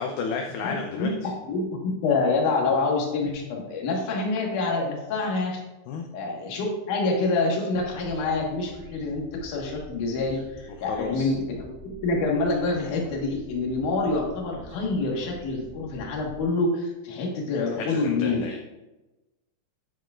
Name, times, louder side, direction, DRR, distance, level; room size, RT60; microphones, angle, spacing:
voice 1, 0.0-1.1 5.9-6.1 10.9-11.3 17.7-18.6, left 5 dB, 80° left, 2 dB, 2.2 m, -32 dB
voice 2, 0.6-5.6 6.1-18.4, left 3 dB, 60° left, -1 dB, 2.4 m, -27 dB
sound 1, 7.7-16.5, right 3 dB, 45° right, 3.4 m, -47 dB
10.5 x 9.2 x 2.5 m, 1.0 s
omnidirectional pair, 5.3 m